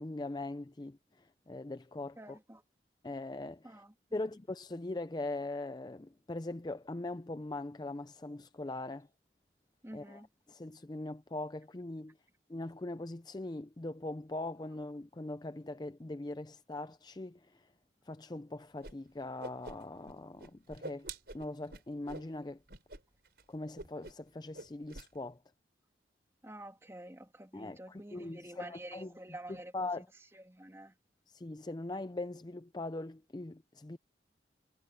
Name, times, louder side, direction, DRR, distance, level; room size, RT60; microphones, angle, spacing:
voice 1, 0.0-2.4 3.0-3.8 4.1-9.1 9.9-10.2 10.5-12.2 12.5-17.7 18.1-22.6 23.5-25.4 27.5-29.1 29.7-30.1 31.3-34.0, left 2 dB, 25° left, 0.5 m, -41 dB
voice 2, 2.2-2.6 3.6-3.9 9.8-10.3 26.4-30.0 30.3-30.9, right 1 dB, 15° right, 2.0 m, -49 dB
Whoosh swoosh swish, 18.8-18.9 19.2-20.1 20.4-22.3 22.7-23.0 23.3-23.4 23.8-24.3 24.5-25.1, right 2 dB, 60° right, 5.2 m, -46 dB
head